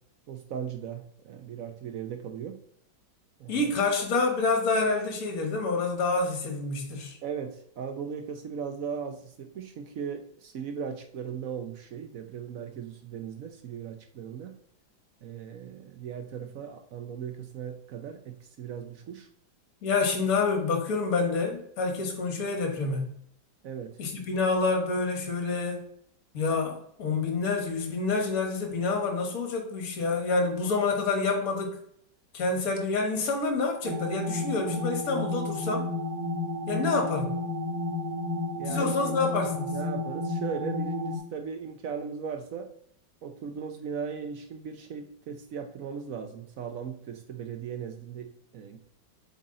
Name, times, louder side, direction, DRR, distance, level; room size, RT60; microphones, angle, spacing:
voice 1, 0.3-2.6 3.4-3.7 7.2-14.5 15.2-19.3 23.6-24.0 38.6-38.9 39.7-42.7 43.2-48.8, right 7 dB, 65° right, 5 dB, 0.8 m, -38 dB
voice 2, 3.5-7.2 19.8-23.1 24.0-25.8 26.3-31.7 32.3-35.9 36.7-37.3 38.7-39.7, left 3 dB, 50° left, 3 dB, 1.6 m, -28 dB
sound 1, 33.8-41.2, left 2 dB, 85° right, 1.8 m, -31 dB
8.0 x 3.9 x 3.8 m, 0.70 s
omnidirectional pair, 2.1 m